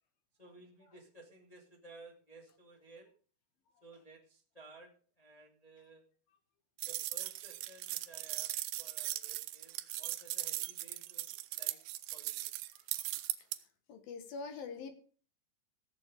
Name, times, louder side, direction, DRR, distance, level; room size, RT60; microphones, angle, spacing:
voice 1, 0.4-3.1 3.8-6.1 6.8-11.3 11.5-11.8 12.1-12.5, right 2 dB, 15° left, -1 dB, 1.3 m, -57 dB
sound 1, 6.8-13.6, right 17 dB, 90° right, 2.9 m, -39 dB
voice 2, 13.9-14.9, left 4 dB, 65° left, 7 dB, 3.2 m, -44 dB
16.0 x 7.7 x 5.1 m, 0.41 s
omnidirectional pair, 4.8 m